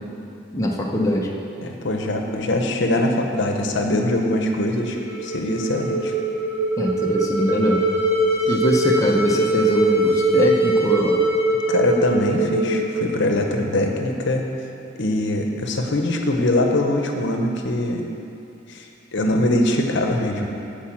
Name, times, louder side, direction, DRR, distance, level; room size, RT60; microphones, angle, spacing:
voice 1, 0.5-1.3 6.8-7.8 8.5-11.2, left 1 dB, 15° left, -1 dB, 0.7 m, -22 dB
voice 2, 1.6-5.0 5.2-6.1 11.7-14.4 15.0-18.0 18.7-20.5, left 1 dB, 65° left, 3 dB, 0.8 m, -22 dB
sound 1, 4.6-13.8, right 2 dB, 15° right, 1.9 m, -22 dB
9.0 x 4.8 x 7.3 m, 2.6 s
head